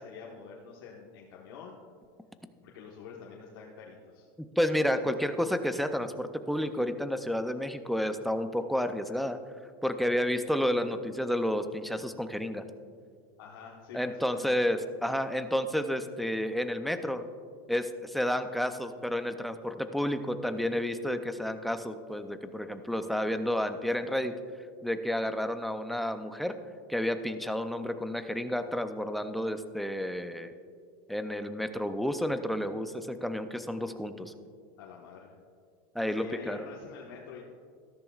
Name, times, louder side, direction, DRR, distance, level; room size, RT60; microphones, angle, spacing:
voice 1, 0.0-1.8 2.6-4.3 13.4-14.5 23.0-23.4 34.8-35.3 36.0-37.4, left 6 dB, 90° left, -3 dB, 1.3 m, -47 dB
voice 2, 4.6-9.4 9.8-12.6 13.9-17.2 17.7-24.3 24.8-26.6 26.9-30.5 31.1-34.3 35.9-36.7, equal, ahead, 8 dB, 0.5 m, -31 dB
13.5 x 13.5 x 2.4 m, 2.2 s
supercardioid pair, 150°, 12 cm